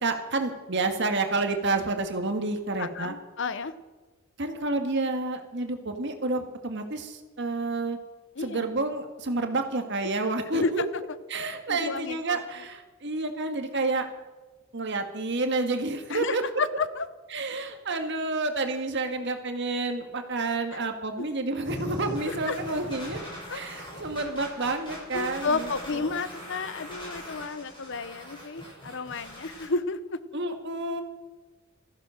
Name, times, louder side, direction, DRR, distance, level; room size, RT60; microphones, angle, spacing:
voice 1, 0.0-3.1 4.4-8.0 8.4-10.8 11.3-14.1 14.7-16.4 17.3-23.2 23.5-26.1 30.3-31.0, right 3 dB, 55° right, 6 dB, 1.7 m, -29 dB
voice 2, 2.8-3.7 8.4-8.7 10.0-10.1 10.5-10.9 11.7-12.4 16.1-17.0 20.7-20.8 21.2-21.3 22.2-22.7 23.5-23.6 25.1-30.2, left 4 dB, 60° left, 14 dB, 0.8 m, -32 dB
sound 1, 21.7-29.7, left 1 dB, 25° left, 7.1 m, -40 dB
15.5 x 14.5 x 6.4 m, 1.3 s
head